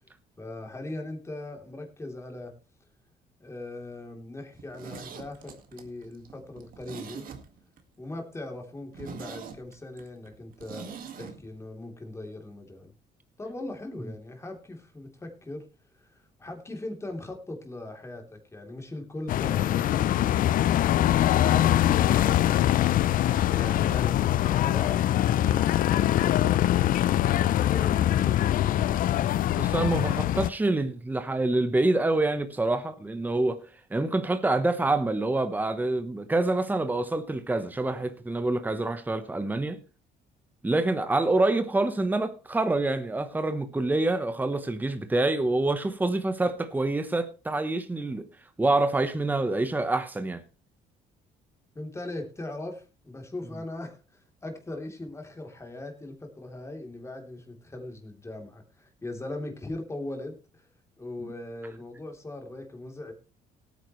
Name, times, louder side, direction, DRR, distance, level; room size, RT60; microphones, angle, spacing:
voice 1, 0.4-2.5 3.4-7.3 8.0-12.9 13.4-15.7 16.0-20.5 20.8-22.4 23.5-27.3 27.6-28.9 51.7-60.7 61.0-63.1, left 2 dB, 15° left, 3.3 m, -40 dB
Zipper (clothing), 4.5-7.8 8.1-8.2 8.6-8.7 8.9-11.3 11.6-11.7, right 6 dB, 55° right, 2.0 m, -43 dB
sound 1, 19.3-30.5, left 12 dB, 55° left, 0.5 m, -23 dB
voice 2, 29.5-33.6 33.9-39.8 40.6-48.3 48.6-50.4, right 2 dB, 10° right, 1.0 m, -26 dB
17.5 x 9.3 x 3.2 m
cardioid pair, 110°, 17 cm